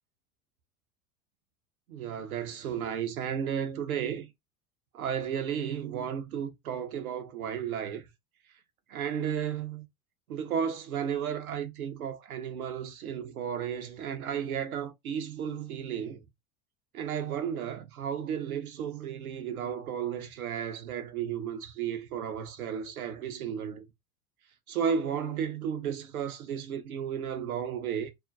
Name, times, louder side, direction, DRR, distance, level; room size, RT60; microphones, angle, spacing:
voice 1, 1.9-4.3 4.9-8.1 8.9-9.8 10.3-16.2 16.9-23.9 24.7-28.1, right 8 dB, 75° right, 0.7 m, -33 dB
2.4 x 2.1 x 2.5 m
figure-of-eight pair, 80°, 44 cm